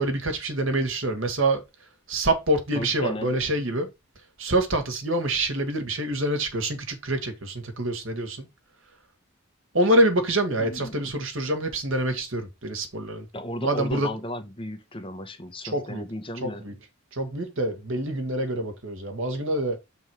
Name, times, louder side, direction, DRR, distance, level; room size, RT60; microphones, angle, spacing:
voice 1, 0.0-1.6 2.1-3.9 4.4-8.5 9.7-13.3 13.6-14.1 15.7-16.0 16.4-16.7 17.1-19.8, right 1 dB, 65° right, 1.7 m, -26 dB
voice 2, 2.7-3.4 10.6-11.2 13.3-16.6, equal, 25° left, 1.0 m, -35 dB
7.1 x 3.9 x 4.7 m
head